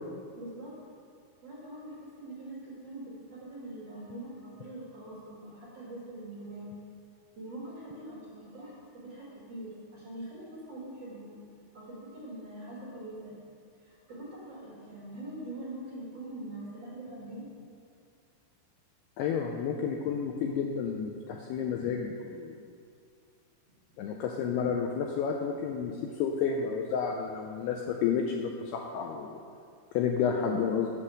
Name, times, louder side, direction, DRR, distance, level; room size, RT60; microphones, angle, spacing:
voice 1, 0.4-0.8 1.4-6.7 7.4-11.3 11.7-13.3 13.8-17.5, right 1 dB, 45° right, -7 dB, 2.2 m, -43 dB
voice 2, 19.2-22.6 24.0-29.4 29.9-30.9, left 6 dB, 85° left, 1 dB, 2.3 m, -31 dB
8.4 x 7.3 x 6.4 m, 2.3 s
omnidirectional pair, 5.3 m